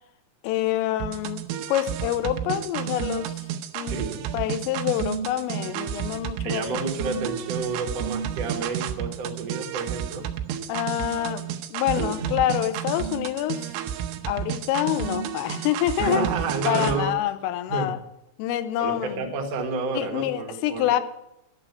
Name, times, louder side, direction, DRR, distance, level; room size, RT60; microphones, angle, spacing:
voice 1, 0.4-3.4 3.7-7.2 10.7-13.7 14.3-16.3 16.7-18.0 18.4-19.3 19.9-21.0, left 12 dB, 90° left, 12 dB, 3.4 m, -27 dB
sound 1, 1.0-17.0, right 9 dB, 85° right, 3.0 m, -31 dB
voice 2, 3.9-4.3 6.4-10.2 12.2-12.3 16.0-17.1 17.7-17.9 18.8-20.9, right 4 dB, 60° right, 1 dB, 1.7 m, -30 dB
11.0 x 7.1 x 9.6 m, 0.85 s
omnidirectional pair, 5.7 m